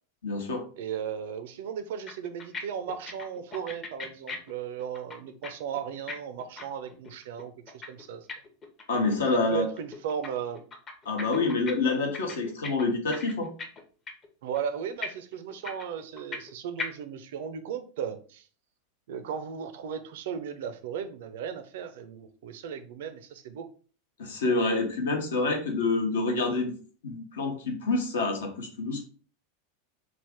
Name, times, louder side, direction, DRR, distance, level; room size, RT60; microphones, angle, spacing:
voice 1, 0.2-0.6 8.9-9.7 11.0-13.5 24.2-26.7 27.0-29.1, left 3 dB, 65° left, 3 dB, 0.8 m, -27 dB
voice 2, 0.8-8.3 9.3-10.6 14.4-18.5 19.1-23.7, right 8 dB, 55° right, 10 dB, 0.4 m, -36 dB
sound 1, 1.8-1.9 2.1-2.6 2.9-5.5 5.7-9.2 9.4-10.3 10.5-11.7 12.0-13.8 14.1-14.3 14.5-14.6 15.0-16.5 16.8-16.9, left 4 dB, 25° left, 0.7 m, -38 dB
3.3 x 2.4 x 3.4 m, 0.41 s
figure-of-eight pair, 85°, 0 cm